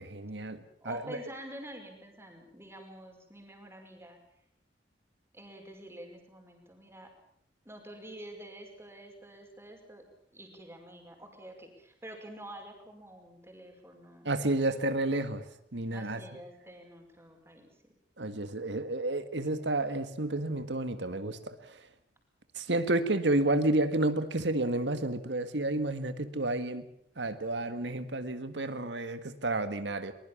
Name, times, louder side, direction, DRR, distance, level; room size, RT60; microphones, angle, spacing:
voice 1, 0.0-1.2 14.2-15.5 15.7-16.2 18.2-21.5 22.6-26.8 27.2-30.1, right 2 dB, 70° right, 11 dB, 1.8 m, -30 dB
voice 2, 0.8-4.2 5.3-7.1 7.7-10.0 10.3-14.3 15.9-17.9, right 1 dB, 15° right, 3 dB, 5.3 m, -48 dB
23.0 x 21.5 x 7.3 m, 0.69 s
head